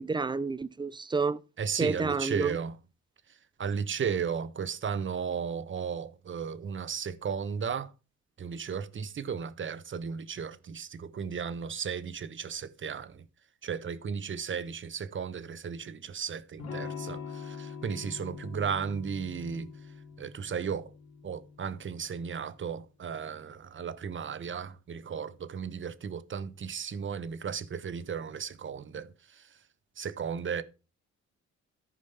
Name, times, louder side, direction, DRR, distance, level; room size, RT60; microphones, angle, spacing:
voice 1, 0.0-1.4 1.8-2.6, right 4 dB, 15° right, 0.6 m, -29 dB
voice 2, 1.6-2.8 3.3-7.9 8.4-13.3 13.6-20.9 21.2-29.6 30.0-30.6, right 6 dB, 40° right, 1.1 m, -35 dB
Electric guitar / Strum, 16.6-22.3, left 6 dB, 55° left, 3.0 m, -43 dB
14.0 x 5.1 x 5.7 m
cardioid pair, 90°, 30 cm